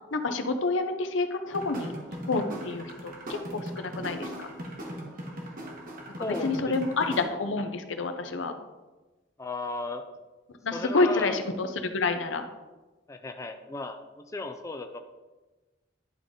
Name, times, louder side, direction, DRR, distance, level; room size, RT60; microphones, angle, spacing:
voice 1, 0.1-1.9 2.2-4.5 6.4-8.6 10.6-12.4, left 3 dB, 75° left, 7 dB, 0.7 m, -28 dB
sound 1, 1.5-7.2, equal, 50° right, 1.2 m, -39 dB
voice 2, 6.2-7.0 9.4-10.0 10.7-11.4 13.1-15.0, left 3 dB, 15° left, 5 dB, 0.4 m, -35 dB
11.0 x 3.8 x 3.7 m, 1.2 s
head